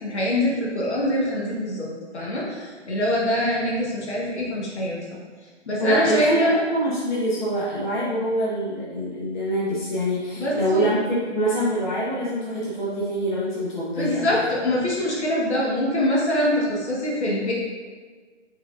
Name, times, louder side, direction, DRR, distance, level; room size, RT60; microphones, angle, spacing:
voice 1, 0.0-1.9 2.1-5.0 5.7-6.6 10.4-10.9 13.9-17.5, left 1 dB, 65° left, -4 dB, 1.2 m, -24 dB
voice 2, 5.8-14.3, right 1 dB, 40° left, -7 dB, 0.8 m, -25 dB
4.7 x 4.0 x 2.3 m, 1.5 s
hypercardioid pair, 165°, 36 cm